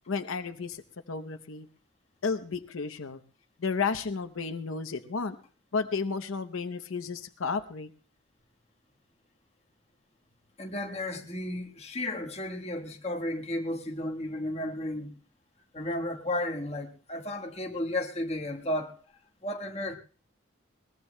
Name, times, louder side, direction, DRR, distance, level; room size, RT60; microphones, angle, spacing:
voice 1, 0.1-0.8 1.1-1.7 2.2-3.2 3.6-5.4 5.7-7.9, left 4 dB, 90° left, 0.8 m, -32 dB
voice 2, 10.6-15.2 15.7-18.9 19.4-20.0, left 1 dB, 30° left, 1.4 m, -33 dB
21.5 x 20.0 x 2.2 m
head